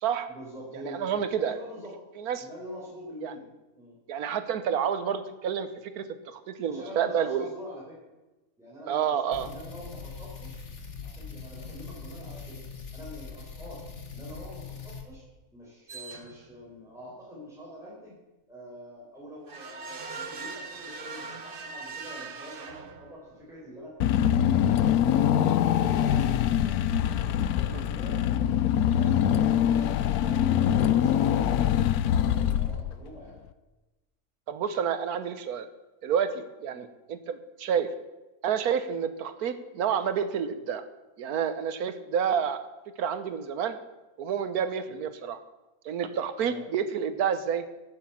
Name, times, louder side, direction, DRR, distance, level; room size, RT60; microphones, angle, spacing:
voice 1, 0.3-1.1 1.4-1.9 2.3-3.5 3.8-4.0 6.6-8.1 8.6-10.6 11.0-12.6 12.9-13.8 14.1-15.2 15.5-18.1 18.5-24.0 24.2-25.5 25.8-26.9 27.2-28.2 28.8-30.0 30.2-33.4 36.7-36.8 44.9-45.0 46.4-46.6, equal, ahead, -6 dB, 4.5 m, -45 dB
voice 2, 0.8-1.6 2.2-2.5 3.2-3.3 4.1-7.5 8.9-9.5 27.7-27.9 34.5-35.7 36.0-37.9 38.4-40.8 41.2-42.6 43.0-43.8 44.2-45.4 45.8-47.6, right 8 dB, 85° right, 10 dB, 1.4 m, -29 dB
sound 1, 9.3-15.0, left 5 dB, 50° left, 1.8 m, -42 dB
sound 2, 15.9-16.6 19.5-23.4, right 4 dB, 40° right, 1.1 m, -40 dB
Car / Engine, 24.0-33.2, left 10 dB, 85° left, 1.1 m, -24 dB
11.5 x 8.8 x 7.3 m, 1.1 s
omnidirectional pair, 1.6 m